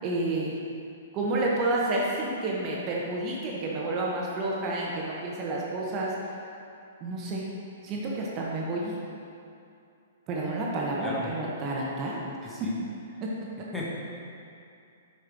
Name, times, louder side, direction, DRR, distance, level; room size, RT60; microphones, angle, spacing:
voice 1, 0.0-0.6 1.1-6.1 7.0-7.4 7.8-9.0 10.3-12.2, right 2 dB, 35° right, -4 dB, 1.0 m, -30 dB
voice 2, 11.0-11.3 12.4-12.7 13.1-13.2 13.7-13.8, left 2 dB, 5° left, -6 dB, 1.2 m, -36 dB
6.5 x 5.4 x 3.6 m, 2.5 s
hypercardioid pair, 130°, 0 cm